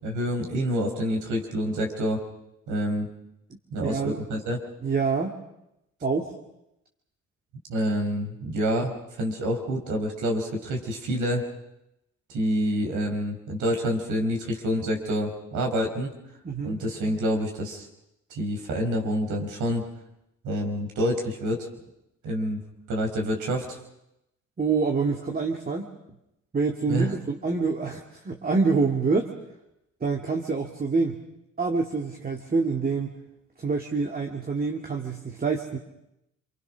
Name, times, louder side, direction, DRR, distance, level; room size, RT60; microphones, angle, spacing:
voice 1, 0.0-2.2 2.7-3.1 3.7-4.6 7.7-11.4 12.3-16.1 16.6-17.9 18.3-19.8 20.4-21.7 22.2-22.6 22.9-23.8 26.9-27.1, equal, 80° right, 2 dB, 4.9 m, -27 dB
voice 2, 3.8-4.2 4.8-5.4 6.0-6.3 16.4-16.8 24.6-25.9 26.5-29.3 30.0-31.2 31.6-33.2 33.6-35.8, right 4 dB, 30° right, 1 dB, 2.3 m, -26 dB
27.5 x 24.5 x 6.3 m, 0.86 s
cardioid pair, 90°, 30 cm